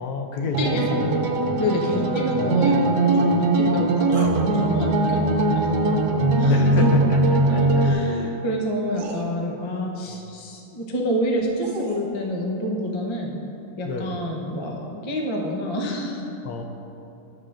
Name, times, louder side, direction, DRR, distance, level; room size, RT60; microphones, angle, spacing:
voice 1, 0.0-1.6 2.3-2.7 6.5-7.9 10.1-10.2 13.8-14.1 16.4-16.6, left 4 dB, 70° left, 4 dB, 1.1 m, -30 dB
sound 1, 0.5-7.9, right 2 dB, 80° right, 1.3 m, -20 dB
voice 2, 0.6-1.0 1.6-5.7 6.4-6.9 7.5-13.4 13.8-16.3, equal, 35° left, 0 dB, 0.4 m, -28 dB
sound 2, 4.1-4.4 6.7-7.0 8.3-8.4 8.9-9.2 11.2-12.1, right 4 dB, 60° right, 0.9 m, -36 dB
12.0 x 7.3 x 2.5 m, 2.7 s
omnidirectional pair, 1.8 m